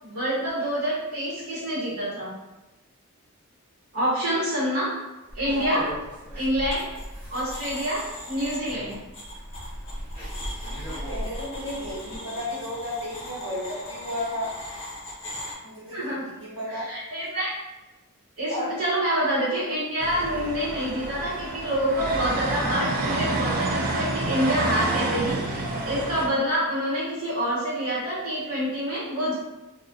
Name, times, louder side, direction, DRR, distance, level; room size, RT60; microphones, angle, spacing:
voice 1, 0.0-2.3 3.9-4.9 5.3-5.8 6.3-6.8 7.3-8.0 8.3-9.0 15.9-16.2 16.7-17.5 18.4-29.3, equal, 80° right, -9 dB, 0.9 m, -27 dB
sound 1, 5.3-12.2, equal, 10° left, 0.9 m, -38 dB
voice 2, 5.4-5.8 10.8-14.5 15.6-16.9 18.5-18.7, left 1 dB, 55° right, -7 dB, 1.2 m, -33 dB
sound 2, 6.7-7.1 7.3-15.5, left 1 dB, 25° left, 0.5 m, -40 dB
sound 3, 20.0-26.3, right 2 dB, 40° right, 0.4 m, -28 dB
2.5 x 2.0 x 3.6 m, 1.1 s
head